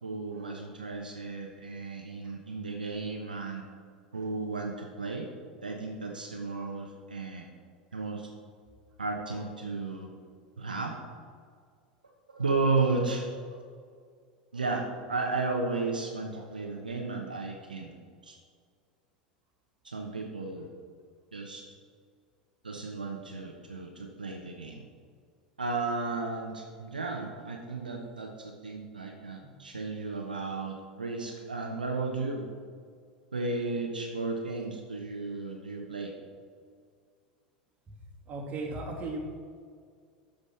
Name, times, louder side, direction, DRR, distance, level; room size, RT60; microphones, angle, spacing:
voice 1, 0.0-3.6 4.1-5.3 5.6-7.5 7.9-8.3 9.0-10.1 10.6-10.9 12.3-13.6 14.5-14.8 15.1-17.9 18.2-18.4 19.8-20.7 21.3-21.6 22.6-24.8 25.6-32.5 33.3-36.1, right 3 dB, 80° right, 1 dB, 1.1 m, -34 dB
voice 2, 38.3-39.2, right 3 dB, 30° right, -2 dB, 2.5 m, -35 dB
13.0 x 5.1 x 6.3 m, 2.1 s
figure-of-eight pair, 80°, 5 cm